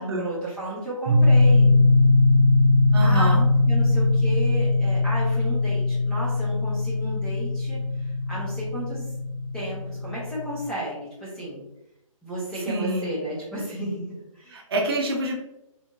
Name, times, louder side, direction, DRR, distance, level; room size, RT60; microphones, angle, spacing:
voice 1, 0.0-1.8 3.0-3.4 3.7-9.1 9.5-11.6 12.2-14.6, right 1 dB, 5° left, -9 dB, 0.8 m, -33 dB
sound 1, 1.1-10.6, left 2 dB, 25° right, 0.3 m, -20 dB
voice 2, 2.9-3.5 12.7-13.1 14.5-15.4, right 1 dB, 45° right, 0 dB, 0.9 m, -27 dB
3.6 x 3.6 x 2.5 m, 0.89 s
hypercardioid pair, 155°, 18 cm